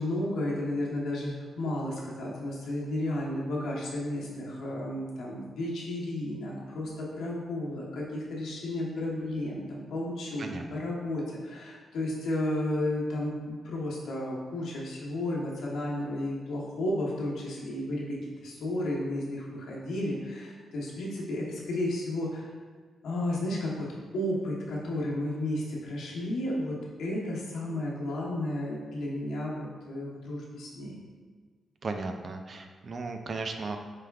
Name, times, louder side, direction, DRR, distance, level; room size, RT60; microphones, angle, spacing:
voice 1, 0.0-22.5 23.0-31.0, left 1 dB, 85° left, -4 dB, 0.9 m, -33 dB
voice 2, 31.8-33.8, right 3 dB, 40° right, 5 dB, 0.3 m, -35 dB
4.9 x 3.4 x 2.3 m, 1.5 s
cardioid pair, 120°, 0 cm